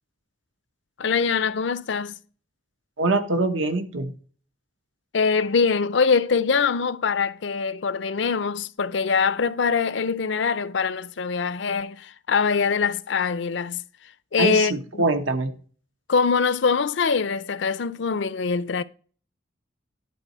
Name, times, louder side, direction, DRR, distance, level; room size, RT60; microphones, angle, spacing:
voice 1, 1.0-2.2 5.1-13.8 14.3-15.0 16.1-18.8, left 5 dB, 70° left, 0.5 m, -23 dB
voice 2, 3.0-4.1 14.4-15.5, right 2 dB, 90° right, 1.2 m, -24 dB
11.5 x 4.1 x 5.6 m
head